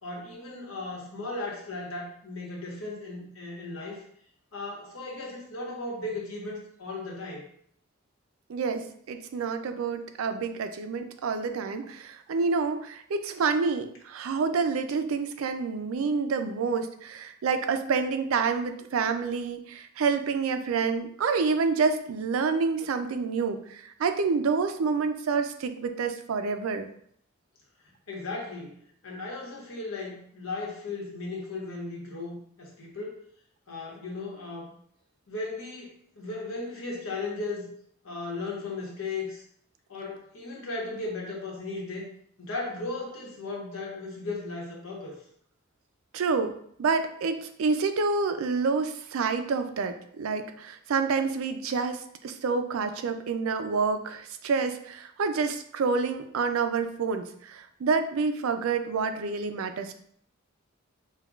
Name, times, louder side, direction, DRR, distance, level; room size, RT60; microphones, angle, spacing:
voice 1, 0.0-4.0 4.5-7.4 28.1-28.8 29.0-33.3 33.7-34.7 35.3-37.7 38.0-39.4 39.9-42.1 42.4-45.2, left 3 dB, 85° left, -3 dB, 1.2 m, -36 dB
voice 2, 8.5-26.9 46.1-46.5 46.8-59.9, right 4 dB, 90° right, 8 dB, 0.4 m, -28 dB
5.5 x 2.3 x 2.3 m, 0.65 s
head